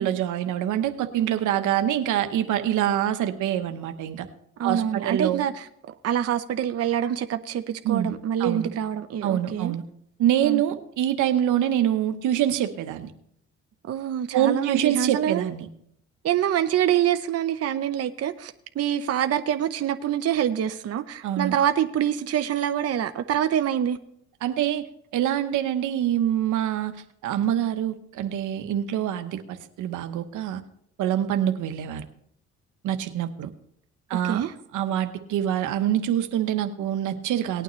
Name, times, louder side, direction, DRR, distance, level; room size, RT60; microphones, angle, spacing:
voice 1, 0.0-4.3 4.6-5.5 7.8-8.7 9.2-9.8 10.2-13.1 14.3-15.7 21.2-21.6 24.4-24.9 25.1-27.0 27.2-30.6 31.0-32.0 32.8-33.5 34.1-34.4 34.7-37.6, right 11 dB, 85° right, 8 dB, 1.0 m, -25 dB
voice 2, 4.6-5.7 6.0-9.8 10.4-10.6 13.9-15.5 16.2-24.0 34.2-34.5, right 10 dB, 55° right, 9 dB, 0.7 m, -25 dB
18.5 x 9.1 x 3.1 m, 0.73 s
cardioid pair, 90°, 30 cm